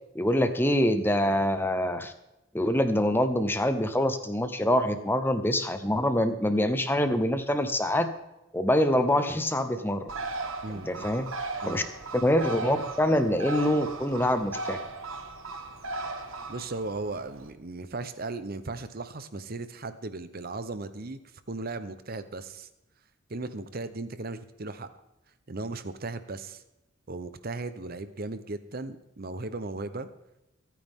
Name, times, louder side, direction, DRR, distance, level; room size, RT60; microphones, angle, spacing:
voice 1, 0.1-2.1 2.5-8.1 8.5-10.1 10.9-11.2 11.6-11.8 12.1-14.8, left 1 dB, 10° left, 9 dB, 0.8 m, -25 dB
Bird, 10.1-17.5, right 3 dB, 80° right, 1.6 m, -37 dB
voice 2, 10.6-11.1 11.6-11.9 16.5-21.2 21.5-22.7 23.3-24.9 25.5-26.6 27.1-30.1, right 3 dB, 45° right, 12 dB, 0.8 m, -36 dB
23.5 x 9.4 x 3.7 m, 0.93 s
head